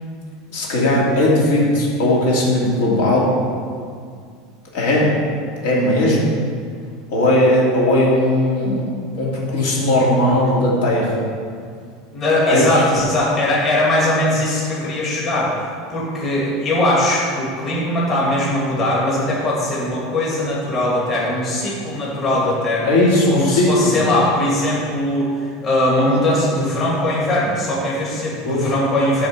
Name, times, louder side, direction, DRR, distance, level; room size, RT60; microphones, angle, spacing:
voice 1, 0.5-3.3 4.7-5.1 5.6-6.3 7.1-8.8 9.2-11.3 12.5-12.6 22.8-24.0 28.4-28.7, left 1 dB, 75° left, -4 dB, 2.4 m, -17 dB
voice 2, 12.1-15.5 15.9-22.9 23.3-29.3, left 1 dB, 30° left, -6 dB, 2.3 m, -20 dB
9.4 x 4.3 x 6.7 m, 2.1 s
supercardioid pair, 150°, 0 cm